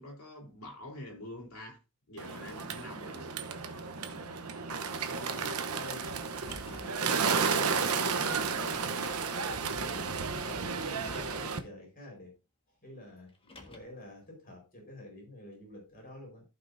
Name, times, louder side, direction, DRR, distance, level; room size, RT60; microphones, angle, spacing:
voice 1, 0.0-1.8 2.1-3.3 9.8-10.2 13.5-13.7, left 1 dB, 65° left, 3.3 m, -46 dB
Bird, 2.2-11.6, right 5 dB, 75° right, 0.9 m, -33 dB
voice 2, 3.7-9.2 9.4-12.3 12.8-13.3 13.7-16.4, left 1 dB, 40° left, 4.5 m, -48 dB
Car, 6.2-7.0 8.1-8.2 8.9-9.5 10.8-11.5 13.3-14.0, left 2 dB, 25° left, 1.5 m, -51 dB
15.0 x 5.6 x 2.6 m
head